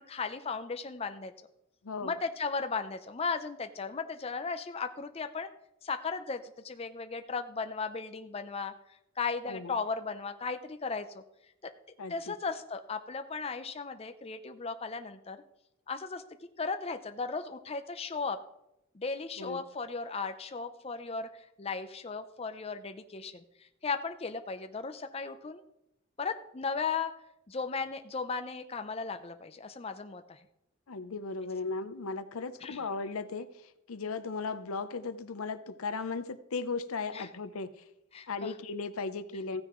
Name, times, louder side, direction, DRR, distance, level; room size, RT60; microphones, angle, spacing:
voice 1, 0.0-1.3 2.0-5.5 5.8-8.7 9.2-11.2 12.1-15.4 15.9-16.2 16.6-18.4 18.9-25.6 26.2-27.1 27.5-30.4 32.6-32.8 37.1-37.3 38.1-38.5, left 4 dB, 30° left, 8 dB, 0.5 m, -36 dB
voice 2, 1.8-2.2 9.5-9.7 12.0-12.3 19.4-19.6 30.9-33.5 33.9-37.7 38.3-39.6, left 4 dB, 85° left, 12 dB, 0.7 m, -36 dB
15.0 x 9.6 x 3.1 m, 0.86 s
head